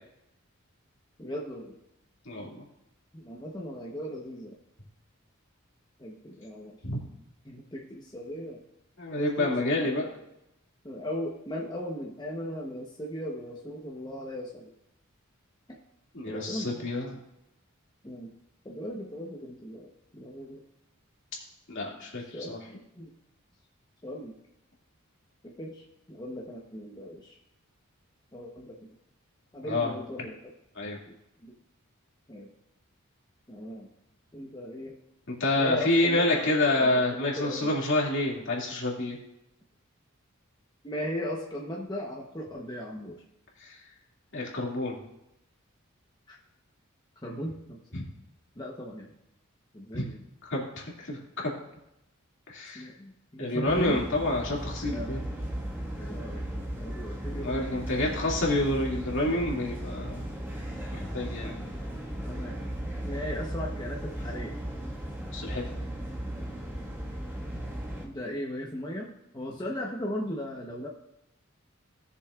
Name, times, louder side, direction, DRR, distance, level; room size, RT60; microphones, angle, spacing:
voice 1, 1.2-1.8 3.1-4.6 6.0-6.8 7.4-8.6 9.1-9.9 10.8-14.7 15.7-15.8 16.3-16.9 18.0-18.3 18.6-20.6 22.3-22.6 22.9-23.1 24.0-24.3 25.4-27.4 28.3-28.8 29.5-30.4 31.1-31.2 31.4-31.6 32.3-32.5 33.5-33.9 34.3-35.0 35.6-37.7 40.8-43.2 46.3-46.4 47.2-47.8 48.5-49.1 49.7-50.2 52.7-54.0 54.8-55.2 56.0-56.5 56.8-58.1 61.4-61.8 62.2-62.6 63.0-64.6 68.0-70.9, equal, 20° left, -1 dB, 0.9 m, -38 dB
voice 2, 2.2-2.6 6.8-7.0 9.0-10.1 16.1-17.1 21.7-22.6 29.7-29.9 30.8-31.0 35.4-39.2 43.6-43.8 44.3-45.0 47.9-48.0 49.9-50.1 50.4-51.2 51.4-51.5 52.5-52.9 53.4-55.2 57.3-60.3 60.9-61.7 65.3-65.6, left 2 dB, 60° left, -2 dB, 2.3 m, -28 dB
sound 1, 53.7-68.1, right 1 dB, 10° right, 1.6 m, -36 dB
17.0 x 6.9 x 2.4 m, 0.83 s
head